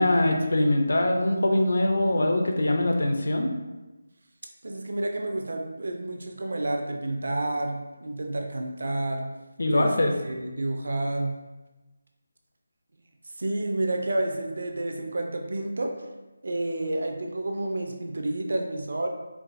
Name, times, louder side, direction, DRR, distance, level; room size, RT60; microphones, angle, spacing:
voice 1, 0.0-3.5 9.6-10.1, left 1 dB, 60° left, 2 dB, 0.5 m, -23 dB
voice 2, 4.6-9.3 9.7-9.9 10.2-11.4 13.4-16.1 16.4-19.1, right 2 dB, 60° right, 2 dB, 0.5 m, -30 dB
4.6 x 2.2 x 2.5 m, 1.1 s
figure-of-eight pair, 175°, 0 cm